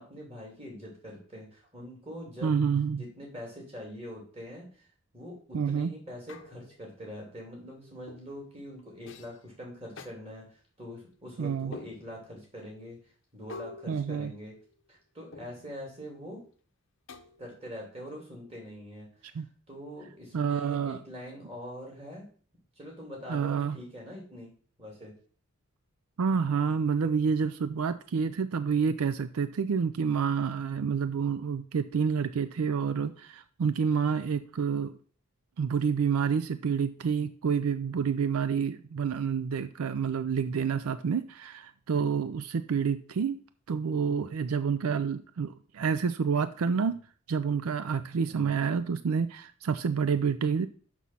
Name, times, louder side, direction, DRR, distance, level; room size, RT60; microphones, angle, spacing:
voice 1, 0.0-2.6 3.0-4.7 5.1-13.0 13.3-14.5 14.9-16.4 17.4-22.3 22.8-24.5 24.8-25.1 46.8-47.0 48.2-48.5, equal, 25° right, -2 dB, 3.0 m, -44 dB
voice 2, 2.4-3.0 5.5-5.9 11.4-11.7 13.9-14.3 19.3-19.5 20.3-21.0 23.3-23.8 26.2-34.9 35.6-43.4 43.7-47.0 47.3-50.7, right 6 dB, 85° right, 12 dB, 0.4 m, -28 dB
sound 1, 6.3-6.9 8.1-8.4 9.1-9.4 10.0-10.1 11.7-12.3 13.5-14.8 15.3-15.8 17.1-17.7, left 3 dB, 60° left, 0.7 m, -47 dB
6.2 x 6.0 x 5.5 m, 0.43 s
head